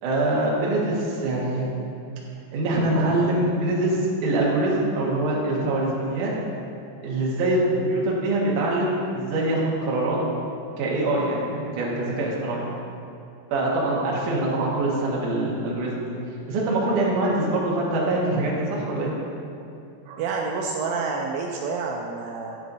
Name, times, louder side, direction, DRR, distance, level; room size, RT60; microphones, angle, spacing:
voice 1, 0.0-1.7 2.5-6.3 7.0-10.2 10.8-12.6 13.5-16.2 16.5-19.1, right 2 dB, 60° right, -5 dB, 2.2 m, -24 dB
voice 2, 16.8-17.2 20.1-22.6, right 4 dB, 80° right, 0 dB, 2.9 m, -29 dB
12.0 x 9.2 x 2.7 m, 2.7 s
omnidirectional pair, 5.8 m